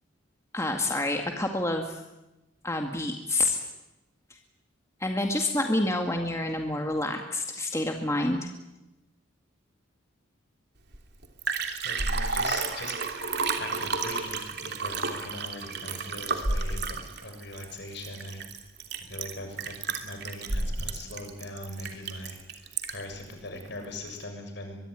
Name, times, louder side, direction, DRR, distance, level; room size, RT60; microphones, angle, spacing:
voice 1, 0.5-2.0 2.6-3.6 5.0-8.5, left 2 dB, 15° left, 3 dB, 2.1 m, -28 dB
Liquid, 10.9-11.0 11.2-23.1 23.6-23.7, right 4 dB, 55° right, 3.0 m, -31 dB
voice 2, 11.8-12.9 13.6-18.5 19.1-22.4 22.9-24.8, left 1 dB, 60° left, 5 dB, 7.0 m, -40 dB
23.5 x 23.0 x 9.9 m, 0.97 s
head